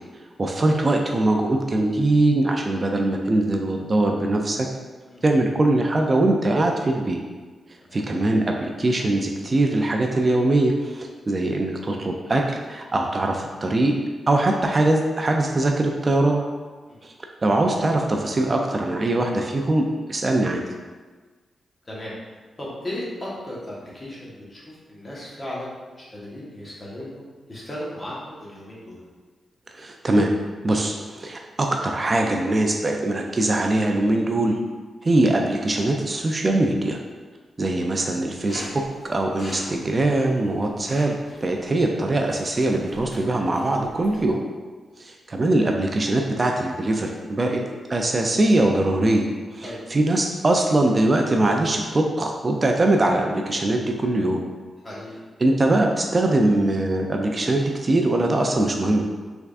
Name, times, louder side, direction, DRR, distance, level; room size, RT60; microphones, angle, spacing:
voice 1, 0.1-4.7 5.2-7.2 7.9-13.9 14.3-16.4 17.0-17.1 17.4-20.6 29.7-30.4 30.6-34.6 35.0-37.0 37.6-41.2 41.4-44.4 45.0-47.6 47.9-49.2 49.5-54.4 55.4-59.0, right 2 dB, 35° right, 2 dB, 0.3 m, -22 dB
voice 2, 21.8-22.1 22.6-29.0 35.1-35.2 49.6-49.8 54.8-55.2, left 1 dB, 35° left, -6 dB, 1.1 m, -36 dB
sound 1, 38.5-44.3, equal, 55° left, 1.2 m, -42 dB
3.4 x 3.3 x 2.4 m, 1.4 s
cardioid pair, 80°, 0 cm